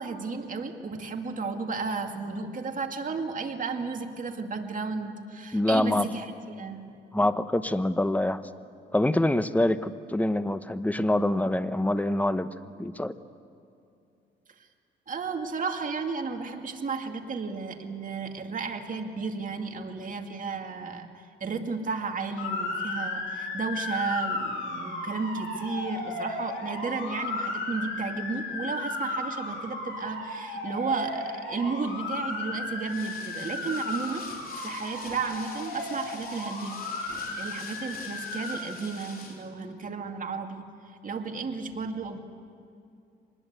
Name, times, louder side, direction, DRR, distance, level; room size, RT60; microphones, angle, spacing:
voice 1, 0.0-7.3 15.1-34.3 34.6-42.2, right 4 dB, 40° right, 4 dB, 2.3 m, -33 dB
voice 2, 5.5-6.1 7.1-8.4 8.9-12.5 12.8-13.1, left 1 dB, 5° left, 12 dB, 0.9 m, -25 dB
Motor vehicle (road) / Siren, 22.4-38.6, left 2 dB, 80° left, 6.0 m, -35 dB
sound 1, 32.8-39.5, left 4 dB, 45° left, 3.8 m, -46 dB
25.5 x 20.5 x 8.1 m, 2.5 s
cardioid pair, 90°, 20 cm